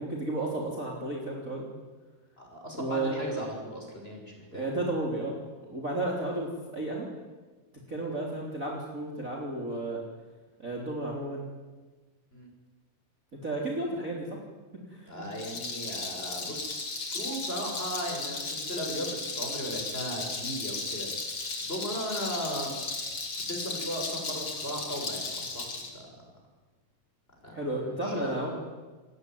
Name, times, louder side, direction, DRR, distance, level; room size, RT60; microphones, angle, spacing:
voice 1, 0.0-1.7 2.8-3.2 4.5-7.1 7.9-10.0 10.6-11.4 13.4-14.4 14.7-15.2 27.5-28.5, right 2 dB, 25° right, -1 dB, 3.8 m, -33 dB
voice 2, 2.4-4.6 7.9-8.1 12.3-12.5 15.1-21.1 21.6-22.7 23.3-26.1 27.4-27.6 28.0-28.5, equal, 15° left, 1 dB, 6.5 m, -37 dB
Rattle, 15.3-25.9, left 3 dB, 40° left, 4.2 m, -35 dB
28.0 x 20.5 x 9.4 m, 1.3 s
omnidirectional pair, 3.9 m